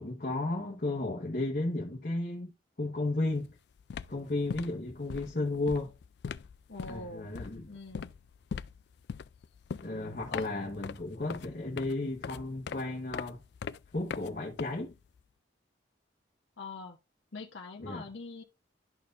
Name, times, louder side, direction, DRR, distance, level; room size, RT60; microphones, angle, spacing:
voice 1, 0.0-2.5 2.8-3.5 4.1-5.9 6.9-7.7 9.8-13.4 13.9-14.9 17.8-18.0, left 2 dB, 45° left, 1.2 m, -33 dB
sound 1, 3.3-3.5 3.8-15.2, left 6 dB, 60° left, 0.3 m, -42 dB
voice 2, 6.7-7.3 7.7-8.1 10.3-10.5 16.6-17.0 17.3-18.4, left 3 dB, 85° left, 0.9 m, -43 dB
12.0 x 4.3 x 2.5 m
head